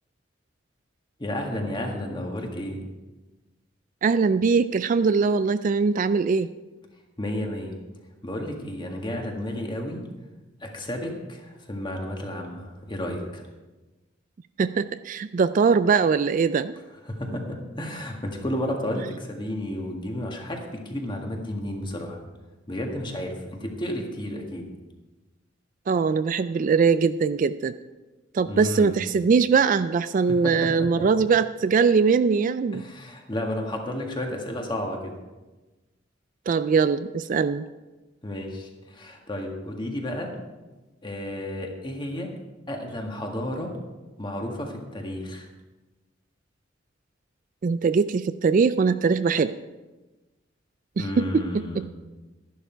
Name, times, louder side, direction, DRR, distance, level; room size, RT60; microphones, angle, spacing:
voice 1, 1.2-2.8 7.2-7.7 8.2-10.0 10.6-13.4 17.1-22.2 22.7-24.7 28.5-29.0 30.3-30.7 32.7-35.1 38.2-40.3 41.0-42.3 42.7-43.7 44.2-45.5 51.0-51.9, left 1 dB, 25° left, 2 dB, 1.7 m, -32 dB
voice 2, 4.0-6.5 14.6-16.7 25.9-27.7 28.3-32.8 36.5-37.7 47.6-49.5 51.0-51.8, right 5 dB, 45° right, 13 dB, 0.3 m, -22 dB
12.5 x 11.0 x 4.5 m, 1.2 s
head